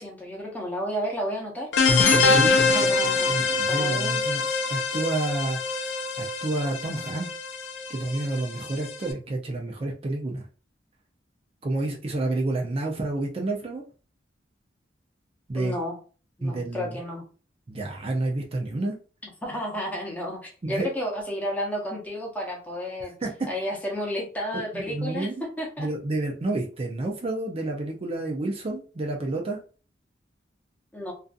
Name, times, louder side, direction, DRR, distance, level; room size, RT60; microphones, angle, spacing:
voice 1, 0.0-1.7 2.7-4.2 15.5-16.0 16.4-17.2 19.4-23.1 23.5-25.3 25.6-25.9 30.9-31.1, equal, 10° left, -2 dB, 0.8 m, -32 dB
sound 1, 1.7-9.1, left 4 dB, 90° left, 0.5 m, -24 dB
voice 2, 3.3-4.4 4.7-7.3 7.9-10.4 11.6-13.8 15.5-15.8 16.4-17.0 17.7-19.0 20.6-20.9 23.2-23.3 24.7-25.4 25.8-29.6, right 2 dB, 35° right, 1 dB, 0.5 m, -29 dB
2.5 x 2.4 x 2.4 m, 0.37 s
head